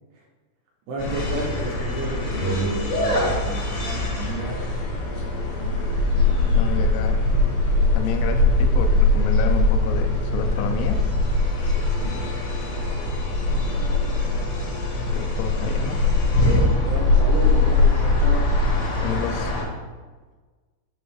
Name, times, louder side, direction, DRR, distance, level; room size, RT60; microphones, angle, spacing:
voice 1, 0.9-4.6 16.4-18.5, right 3 dB, 80° right, -2 dB, 2.4 m, -31 dB
sound 1, 1.0-19.6, left 2 dB, 75° left, 4.0 m, -21 dB
voice 2, 6.5-7.2 7.9-11.0 12.0-12.4 15.1-16.0 19.0-19.5, left 6 dB, 90° left, 6 dB, 2.5 m, -30 dB
7.7 x 3.0 x 4.6 m, 1.3 s
omnidirectional pair, 5.8 m